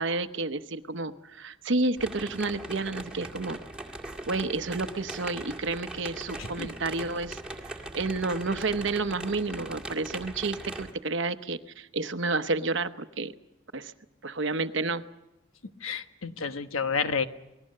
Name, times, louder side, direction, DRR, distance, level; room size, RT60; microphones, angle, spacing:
voice 1, 0.0-3.6 4.3-7.4 7.9-13.3 13.7-13.9 14.2-15.0, right 3 dB, 60° right, 10 dB, 0.9 m, -30 dB
sound 1, 2.0-10.9, right 2 dB, 5° right, 2.0 m, -40 dB
voice 2, 15.8-17.3, left 5 dB, 80° left, 9 dB, 1.3 m, -30 dB
28.0 x 20.0 x 6.6 m, 0.96 s
head